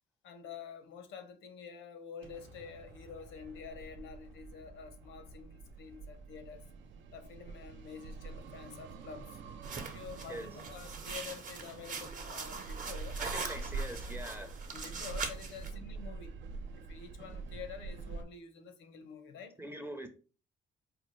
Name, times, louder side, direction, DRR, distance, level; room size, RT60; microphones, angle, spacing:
voice 1, 0.2-6.7 7.1-9.4 9.9-13.2 14.7-16.4 16.8-19.6, left 6 dB, 75° left, 0.7 m, -48 dB
Explosion, 2.2-8.2, right 3 dB, 90° right, 0.9 m, -55 dB
sound 1, 3.4-18.2, right 4 dB, 70° right, 0.4 m, -45 dB
sound 2, 9.6-15.7, right 4 dB, 40° right, 0.8 m, -42 dB
voice 2, 13.2-14.6 19.6-20.1, right 1 dB, 10° right, 0.5 m, -43 dB
4.2 x 2.3 x 3.1 m
cardioid pair, 90°, 20 cm